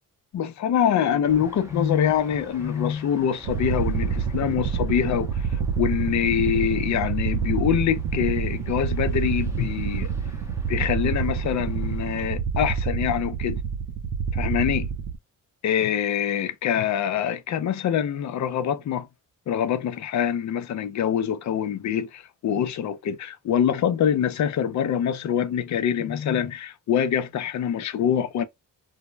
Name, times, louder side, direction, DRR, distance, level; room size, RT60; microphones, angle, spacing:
voice 1, 0.3-10.1 10.7-13.6 14.3-14.9 15.6-19.1 19.5-28.5, left 9 dB, 60° left, 0.5 m, -25 dB
sound 1, 1.3-12.3, right 1 dB, 10° right, 0.6 m, -48 dB
Helicopter Drone, 3.4-15.2, right 6 dB, 70° right, 0.5 m, -27 dB
2.1 x 2.0 x 3.2 m
cardioid pair, 90°, 33 cm